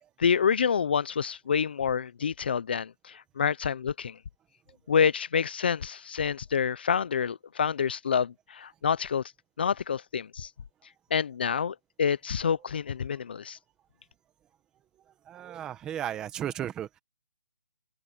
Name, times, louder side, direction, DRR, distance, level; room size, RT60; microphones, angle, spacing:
voice 1, 0.2-4.2 4.9-9.2 9.6-10.5 11.1-13.6, left 7 dB, 35° left, 0.5 m, -27 dB
voice 2, 15.2-17.0, right 10 dB, 10° right, 1.5 m, -35 dB
open air
hypercardioid pair, 175°, 9 cm